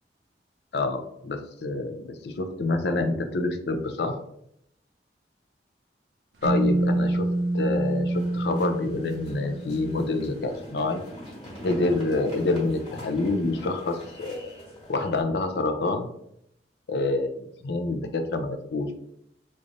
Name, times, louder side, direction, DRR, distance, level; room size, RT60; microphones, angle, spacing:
voice 1, 0.7-4.2 6.4-7.3 7.5-11.0 11.6-14.5 14.9-16.1 16.9-18.9, left 2 dB, 65° left, 6 dB, 0.5 m, -27 dB
sound 1, 6.4-10.3, right 1 dB, 80° right, 0.7 m, -27 dB
sound 2, 8.1-15.2, equal, 30° left, 1.3 m, -43 dB
3.2 x 2.5 x 3.8 m, 0.75 s
head